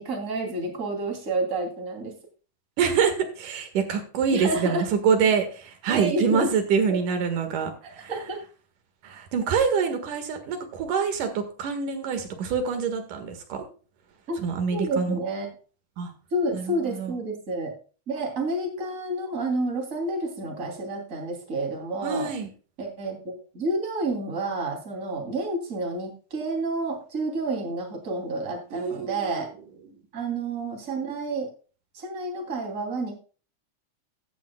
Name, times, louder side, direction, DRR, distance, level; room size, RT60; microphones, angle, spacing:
voice 1, 0.0-2.1 4.3-4.9 5.9-6.5 6.9-7.0 8.1-8.4 14.3-14.4 14.7-15.5 16.3-17.7 18.1-22.3 22.8-29.5 30.1-31.5 31.9-33.1, right 2 dB, 25° right, 2 dB, 3.1 m, -29 dB
voice 2, 2.8-8.1 9.0-13.6 14.4-15.2 16.0-16.1 16.5-17.1 22.0-22.5 28.7-29.5, right 6 dB, 85° right, 7 dB, 3.2 m, -26 dB
15.0 x 10.0 x 2.2 m, 0.37 s
omnidirectional pair, 3.6 m